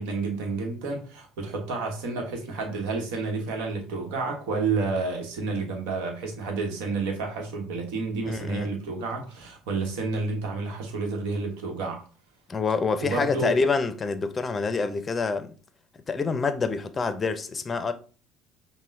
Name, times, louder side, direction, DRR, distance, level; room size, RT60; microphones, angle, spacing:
voice 1, 0.0-12.0 13.0-13.5, right 4 dB, 75° right, 1.0 m, -30 dB
voice 2, 8.2-8.7 12.5-15.5 16.1-17.9, left 4 dB, 30° left, 0.5 m, -27 dB
5.5 x 2.2 x 2.6 m
hypercardioid pair, 70°, 0 cm